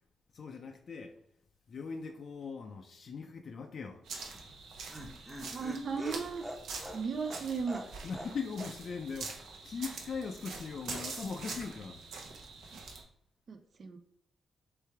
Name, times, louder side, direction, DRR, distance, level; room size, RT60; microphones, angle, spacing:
voice 1, 0.3-1.1 1.7-4.0 8.0-12.0, left 5 dB, 55° left, 0.4 m, -40 dB
sound 1, 4.0-13.0, right 4 dB, 85° right, 0.8 m, -45 dB
Laughter, 4.3-8.3 8.6-8.7 9.0-9.1, equal, 5° right, 0.7 m, -44 dB
voice 2, 5.5-6.4 6.8-7.8 13.5-14.0, right 5 dB, 50° right, 0.4 m, -36 dB
3.3 x 3.2 x 4.5 m
cardioid pair, 100°, 0 cm